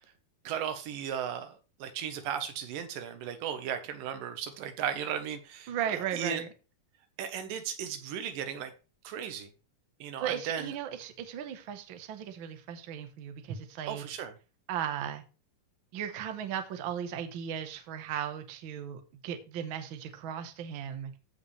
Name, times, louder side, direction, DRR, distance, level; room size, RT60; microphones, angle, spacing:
voice 1, 0.4-5.7 6.1-6.4 7.2-8.7 9.0-9.5 10.0-10.7 13.9-14.3, right 8 dB, 90° right, 2.8 m, -36 dB
voice 2, 5.7-6.5 10.2-14.1 14.7-15.2 15.9-21.1, right 9 dB, 60° right, 1.3 m, -36 dB
15.0 x 5.2 x 3.3 m
omnidirectional pair, 3.8 m